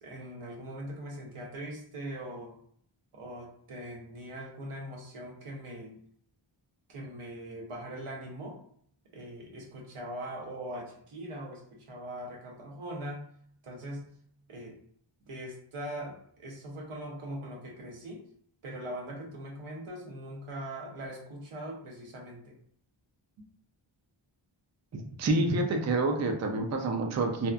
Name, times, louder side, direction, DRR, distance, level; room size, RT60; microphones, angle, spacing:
voice 1, 0.0-2.5 3.1-6.0 6.9-8.6 9.1-13.2 13.6-14.1 14.5-14.8 15.3-18.2 18.6-22.6, right 1 dB, 90° right, -1 dB, 0.8 m, -41 dB
voice 2, 24.9-27.5, right 2 dB, 35° right, 3 dB, 0.4 m, -28 dB
2.8 x 2.4 x 2.2 m, 0.63 s
wide cardioid pair, 75°, 49 cm